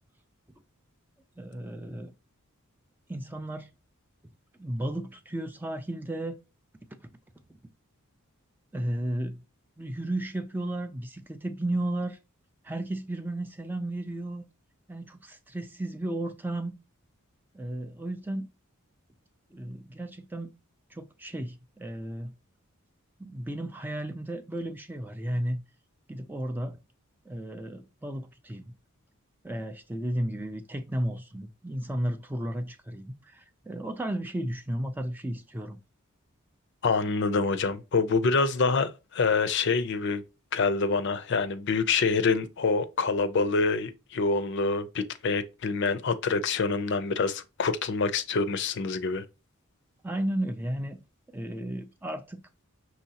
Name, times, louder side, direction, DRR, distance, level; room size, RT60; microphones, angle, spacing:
voice 1, 1.4-2.1 3.1-3.7 4.6-6.4 6.9-7.1 8.7-9.4 9.8-12.2 12.6-14.4 14.9-16.8 17.5-18.5 19.5-20.5 20.9-22.3 23.2-25.6 26.1-26.8 27.3-28.8 29.4-35.8 50.0-51.0 51.3-52.4, right 1 dB, 10° right, 0.3 m, -34 dB
voice 2, 36.8-40.2 40.5-49.2, left 4 dB, 55° left, 0.5 m, -26 dB
5.6 x 3.0 x 2.8 m
head